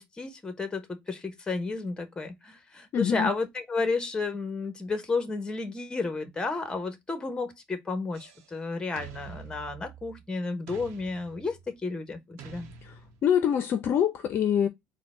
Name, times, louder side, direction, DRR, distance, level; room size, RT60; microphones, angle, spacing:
voice 1, 0.0-12.7, left 3 dB, 15° left, 1.1 m, -32 dB
voice 2, 2.9-3.3 12.8-14.7, left 9 dB, 50° left, 0.6 m, -25 dB
sound 1, 8.1-8.6 9.0-10.2 10.7-11.8 12.4-13.4, right 6 dB, 70° right, 0.9 m, -47 dB
4.3 x 2.2 x 3.5 m
cardioid pair, 115°, 5 cm